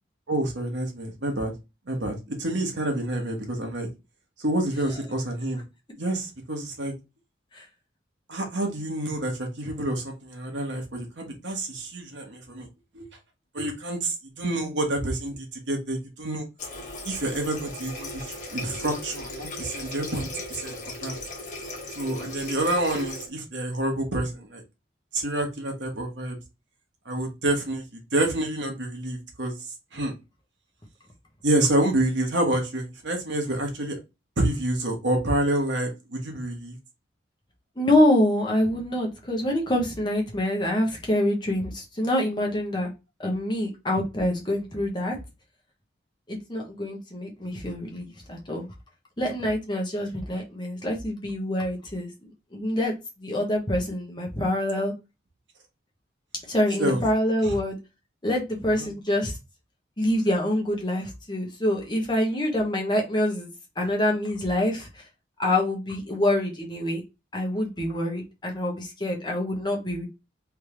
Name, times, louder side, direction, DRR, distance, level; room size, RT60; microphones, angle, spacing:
voice 1, 0.3-1.5 1.9-3.9 4.4-5.6 6.0-6.9 8.3-12.7 12.9-13.1 13.5-16.4 17.0-21.1 22.0-24.6 25.1-26.3 27.0-27.8 28.1-29.5 29.9-30.1 31.4-34.0 34.4-36.8 56.7-57.0 57.4-57.5 58.8-58.9, right 1 dB, 75° right, 1.4 m, -28 dB
Water tap faucet, 16.6-23.3, left 2 dB, 40° left, 1.3 m, -37 dB
voice 2, 37.8-42.9 43.2-45.2 46.3-48.7 49.2-52.1 52.5-54.9 56.5-57.8 58.2-59.4 60.0-63.5 63.8-65.1 65.4-67.0 67.3-70.1, left 1 dB, 25° left, 1.0 m, -26 dB
3.5 x 3.2 x 3.0 m
head